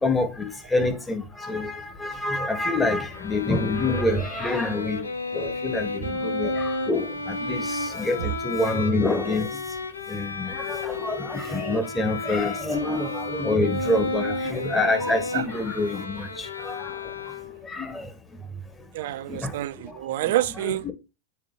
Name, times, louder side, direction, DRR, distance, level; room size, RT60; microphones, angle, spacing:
voice 1, 0.0-5.0 5.3-7.6 7.9-9.5 10.1-16.8 17.7-18.0 19.3-19.5 20.6-20.9, left 2 dB, 10° left, 1.1 m, -26 dB
Bowed string instrument, 3.1-17.8, left 2 dB, 75° left, 0.8 m, -32 dB
voice 2, 18.9-20.8, right 14 dB, 55° right, 0.4 m, -27 dB
8.2 x 3.5 x 3.4 m
figure-of-eight pair, 90°, 0 cm